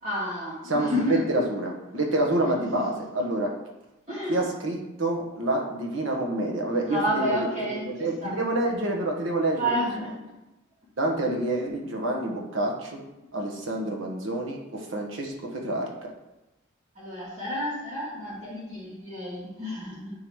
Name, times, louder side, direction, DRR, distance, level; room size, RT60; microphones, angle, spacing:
voice 1, 0.0-1.2 4.1-4.4 6.9-8.4 9.6-10.1 17.0-20.1, equal, 30° right, -11 dB, 2.3 m, -30 dB
voice 2, 0.7-3.5 4.3-9.8 11.0-13.0 13.3-15.9, right 1 dB, 65° right, 0 dB, 1.3 m, -27 dB
10.5 x 3.9 x 3.2 m, 0.98 s
head